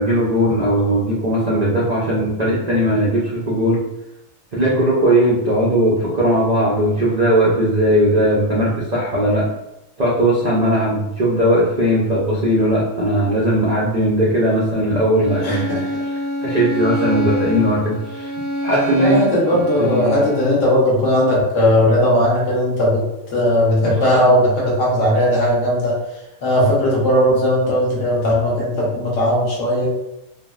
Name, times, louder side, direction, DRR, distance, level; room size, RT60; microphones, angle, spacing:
voice 1, 0.0-3.8 4.5-9.5 10.0-18.3 18.6-19.3 19.5-20.2 23.8-23.9, right 1 dB, 70° right, -6 dB, 0.4 m, -18 dB
Bowed string instrument, 15.2-20.6, left 1 dB, 90° right, 1.1 m, -26 dB
voice 2, 15.4-15.8 19.0-23.0 23.3-25.9 26.4-29.9, equal, 60° left, -4 dB, 1.1 m, -17 dB
3.6 x 2.0 x 2.2 m, 0.88 s
omnidirectional pair, 1.5 m